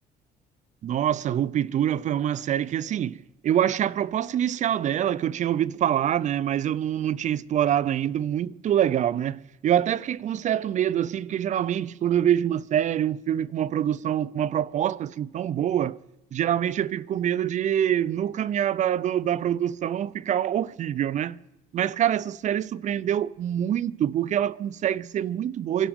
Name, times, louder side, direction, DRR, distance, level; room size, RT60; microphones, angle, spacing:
voice 1, 0.8-16.0 16.3-21.4 21.7-25.9, right 10 dB, 45° right, 0.5 m, -25 dB
28.5 x 12.5 x 3.6 m
cardioid pair, 110°, 17 cm